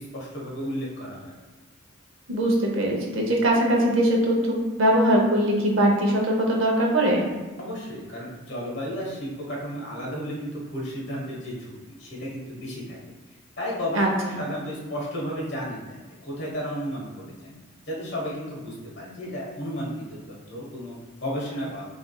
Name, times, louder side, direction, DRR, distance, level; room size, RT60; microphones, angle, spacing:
voice 1, 0.0-1.3 7.6-11.7 12.0-13.0 13.6-17.5 17.8-21.8, equal, 55° left, -4 dB, 1.2 m, -33 dB
voice 2, 2.3-7.2 13.9-14.4, right 1 dB, 70° right, -1 dB, 0.8 m, -21 dB
3.6 x 3.4 x 2.3 m, 1.3 s
head